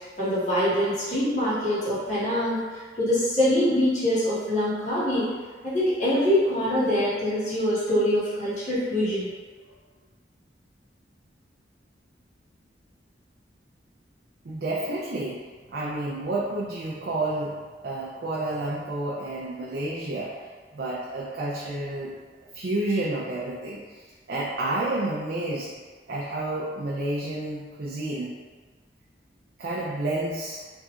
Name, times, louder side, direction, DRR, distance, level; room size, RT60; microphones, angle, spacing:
voice 1, 0.2-2.6 3.0-5.2 5.6-9.3, left 1 dB, 40° left, -11 dB, 1.3 m, -24 dB
voice 2, 14.4-15.4 15.7-17.5 17.8-20.3 20.7-22.1 22.5-25.7 26.1-28.3 29.6-30.6, right 2 dB, 60° right, -6 dB, 0.5 m, -30 dB
3.6 x 2.8 x 2.4 m, 1.4 s
head